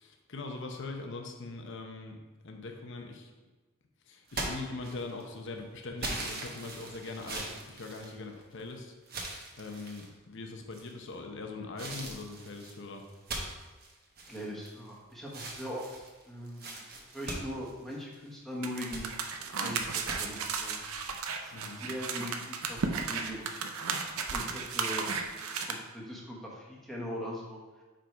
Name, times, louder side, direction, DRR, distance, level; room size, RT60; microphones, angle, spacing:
voice 1, 0.0-2.2 2.4-3.3 4.1-9.2 9.6-13.0 21.5-21.8, left 3 dB, 60° left, 3 dB, 0.8 m, -42 dB
sound 1, 4.3-5.3 6.0-8.6 9.1-10.1 10.7-11.2 11.8-14.9 15.3-18.3 18.7-19.1 20.1-20.2, right 2 dB, 45° right, 1.0 m, -40 dB
voice 2, 14.2-16.8 17.1-23.5 24.2-27.8, equal, ahead, -4 dB, 1.2 m, -41 dB
sound 2, 18.6-25.7, right 5 dB, 85° right, 0.6 m, -34 dB
5.2 x 5.1 x 4.5 m, 1.2 s
head